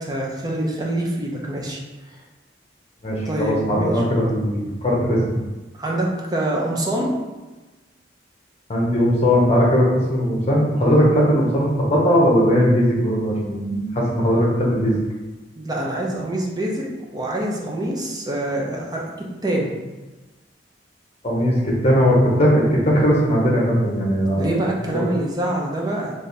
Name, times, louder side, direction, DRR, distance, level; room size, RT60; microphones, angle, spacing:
voice 1, 0.0-1.8 2.1-2.2 3.3-4.0 5.8-7.1 15.6-16.8 17.1-19.7 24.4-26.1, right 1 dB, 20° right, -2 dB, 0.6 m, -25 dB
voice 2, 3.0-4.5 4.8-5.2 8.7-15.0 21.2-24.6 24.9-25.0, equal, 35° left, -3 dB, 0.9 m, -18 dB
3.5 x 2.6 x 4.1 m, 1.2 s
head